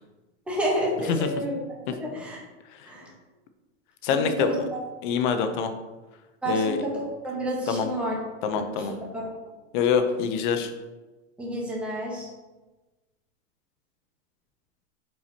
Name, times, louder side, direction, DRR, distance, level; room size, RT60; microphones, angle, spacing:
voice 1, 0.5-1.6 2.0-2.4 2.9-3.0 4.1-4.8 6.4-6.9 7.2-8.2 8.5-8.7 9.1-9.3 11.4-12.3, equal, 5° right, -3 dB, 1.1 m, -29 dB
voice 2, 4.0-4.5 5.0-5.7 6.5-6.8 7.7-7.9 8.4-8.9 9.7-10.7, left 6 dB, 40° left, 7 dB, 0.8 m, -25 dB
10.0 x 4.7 x 2.9 m, 1.1 s
supercardioid pair, 160°, 36 cm